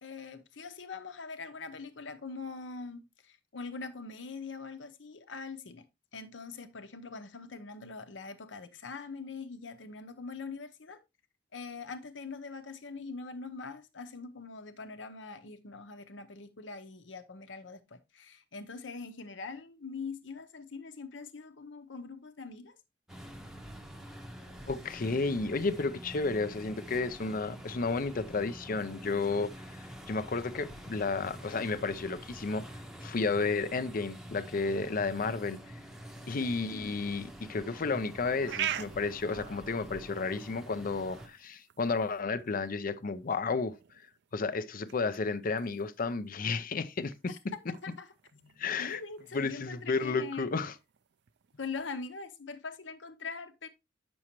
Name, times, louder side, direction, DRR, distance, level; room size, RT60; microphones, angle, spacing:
voice 1, 0.0-5.9 6.1-11.0 11.5-22.7 36.4-36.9 47.3-47.4 47.8-48.1 48.8-50.5 51.6-53.7, left 4 dB, 80° left, 0.9 m, -43 dB
sound 1, 23.1-41.3, equal, ahead, 0.8 m, -47 dB
voice 2, 24.7-29.5 30.1-32.7 33.0-35.6 36.3-43.8 44.3-47.3 48.6-49.0 49.3-50.7, left 4 dB, 50° left, 0.6 m, -32 dB
sound 2, 37.8-51.9, right 10 dB, 65° right, 0.4 m, -45 dB
8.5 x 6.2 x 3.0 m
head